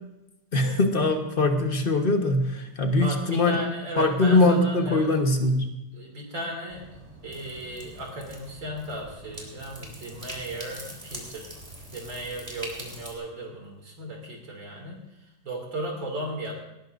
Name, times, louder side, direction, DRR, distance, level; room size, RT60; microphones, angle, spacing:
voice 1, 0.5-3.6 4.0-5.7, left 2 dB, 35° left, 4 dB, 1.3 m, -22 dB
voice 2, 3.0-5.1 5.9-11.5 11.9-16.5, right 1 dB, 80° right, 0 dB, 3.3 m, -36 dB
sound 1, 6.7-13.1, right 1 dB, 20° right, 3.2 m, -43 dB
19.5 x 17.5 x 2.6 m, 0.93 s
omnidirectional pair, 2.0 m